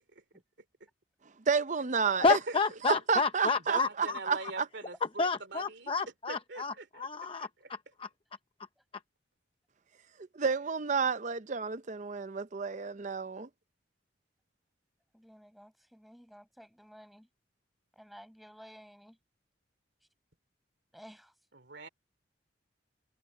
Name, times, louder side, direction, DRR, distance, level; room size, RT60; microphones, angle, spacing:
voice 1, 1.5-2.4 2.8-4.7 10.3-13.5, right 5 dB, 40° right, 0.6 m, -30 dB
voice 2, 2.2-4.2 5.2-8.1, left 4 dB, 30° left, 0.6 m, -30 dB
voice 3, 3.7-5.9 6.3-7.1 7.4-7.7 21.5-21.9, right 3 dB, 65° right, 2.7 m, -42 dB
voice 4, 15.1-17.3 17.9-19.2 20.9-21.3, equal, ahead, 7.1 m, -54 dB
head